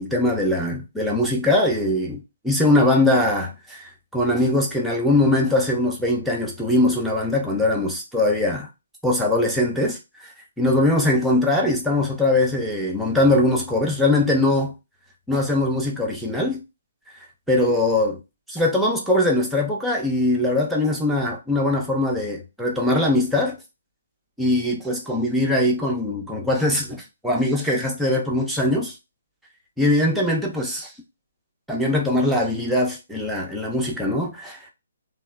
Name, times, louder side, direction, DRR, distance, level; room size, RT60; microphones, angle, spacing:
voice 1, 0.0-8.7 9.0-10.0 10.6-14.7 15.3-16.6 17.5-18.2 18.5-23.6 24.4-28.9 29.8-30.9 31.7-34.7, left 1 dB, ahead, 0.5 m, -21 dB
2.9 x 2.1 x 2.2 m
figure-of-eight pair, 135°, 0 cm